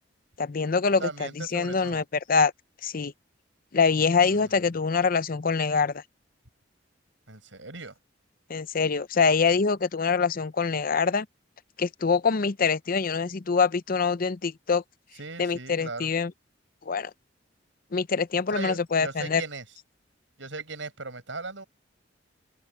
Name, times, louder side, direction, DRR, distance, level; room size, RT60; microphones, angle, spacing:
voice 1, 0.4-2.0 2.3-2.5 2.8-3.1 3.7-6.0 8.5-11.3 11.8-14.8 15.4-16.3 16.9-17.1 17.9-19.4, left 5 dB, 50° left, 0.6 m, -24 dB
voice 2, 1.0-2.0 4.3-4.7 7.3-7.9 15.1-16.1 18.5-19.6 20.4-21.6, right 3 dB, 80° right, 6.3 m, -38 dB
open air
head